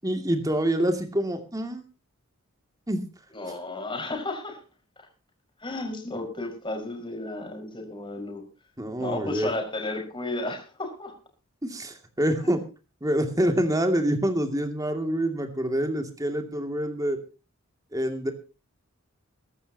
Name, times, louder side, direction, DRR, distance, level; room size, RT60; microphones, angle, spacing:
voice 1, 0.0-1.8 2.9-3.0 8.8-9.5 11.6-12.6 13.0-17.2 17.9-18.3, right 1 dB, 15° right, 5 dB, 2.5 m, -26 dB
voice 2, 3.3-4.6 5.0-5.1 5.6-8.4 9.0-11.2 12.4-12.6, left 2 dB, 25° left, 3 dB, 5.4 m, -33 dB
23.0 x 12.0 x 2.9 m, 0.33 s
head